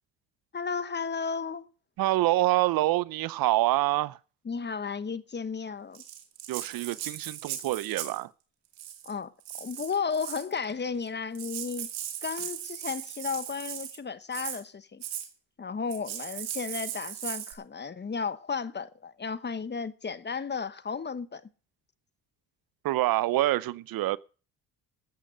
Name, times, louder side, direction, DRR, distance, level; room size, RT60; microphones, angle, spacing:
voice 1, 0.5-1.7 4.4-6.0 9.0-11.9 12.2-15.0 15.6-21.4, left 5 dB, 25° left, 1.1 m, -34 dB
voice 2, 2.0-4.2 6.5-8.3 22.8-24.2, right 16 dB, 60° right, 0.6 m, -26 dB
Rattle (instrument), 5.9-8.2 8.7-9.1 9.4-10.5 11.1-11.2 11.3-14.0 14.3-14.6 15.0-15.3 15.9-17.5, right 11 dB, 80° right, 2.3 m, -38 dB
13.0 x 8.7 x 6.5 m
supercardioid pair, 70°, 40 cm